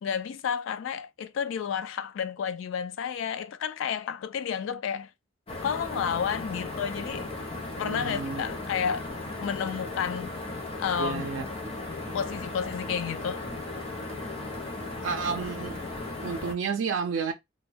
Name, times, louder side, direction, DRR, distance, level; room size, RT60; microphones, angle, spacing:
voice 1, 0.0-5.1 5.6-7.3 7.8-9.1 9.4-10.3 10.8-11.3 12.1-13.5, left 7 dB, 85° left, 0.3 m, -31 dB
sound 1, 5.5-16.5, left 2 dB, 30° left, 0.7 m, -36 dB
voice 2, 7.8-8.4 11.0-11.5 15.0-15.8 16.2-17.3, right 5 dB, 80° right, 0.4 m, -31 dB
2.2 x 2.1 x 3.2 m
head